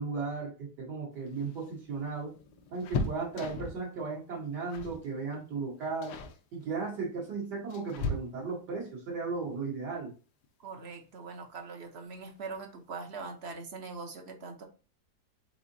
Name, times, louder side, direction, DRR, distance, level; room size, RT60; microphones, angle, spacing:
voice 1, 0.0-2.3 2.7-6.2 6.5-10.1, right 4 dB, 80° right, -3 dB, 1.9 m, -36 dB
sound 1, 1.2-3.9 4.7-5.1 5.3-5.6 6.0-6.4 7.2-8.7 10.4-10.5 10.9-11.0 12.2-12.6 12.9-13.0 13.3-13.5, left 3 dB, 80° left, 1.2 m, -37 dB
voice 2, 10.6-14.6, right 4 dB, 55° right, 5 dB, 0.7 m, -42 dB
4.9 x 3.7 x 2.6 m, 0.35 s
omnidirectional pair, 1.8 m